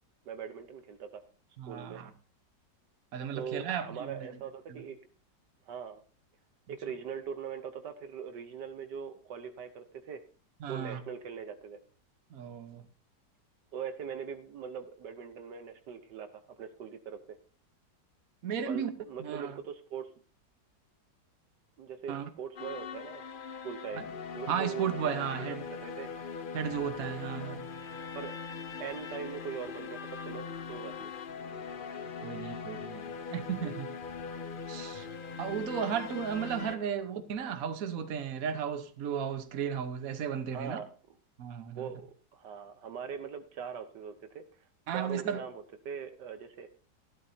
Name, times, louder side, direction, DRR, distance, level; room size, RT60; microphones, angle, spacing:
voice 1, 0.3-1.2 1.7-2.0 3.4-5.0 5.6-6.0 6.7-10.2 10.7-11.8 13.7-16.3 16.6-17.4 18.6-20.1 21.8-24.0 24.3-26.1 27.3-27.5 28.1-28.3 28.8-31.1 36.7-36.9 40.5-40.9 41.7-44.4 44.9-46.7, right 7 dB, 70° right, 1.5 m, -41 dB
voice 2, 1.6-2.1 3.1-4.3 4.7-4.8 10.6-11.0 12.3-12.8 18.4-18.9 19.2-19.6 22.1-22.3 24.0-24.1 24.5-25.6 26.5-27.6 32.2-33.9 34.7-35.1 35.4-40.8 41.4-41.9 44.9-45.4, right 8 dB, 55° right, 1.4 m, -35 dB
sound 1, 22.6-36.8, left 5 dB, 60° left, 0.5 m, -41 dB
15.5 x 12.0 x 2.7 m
omnidirectional pair, 1.9 m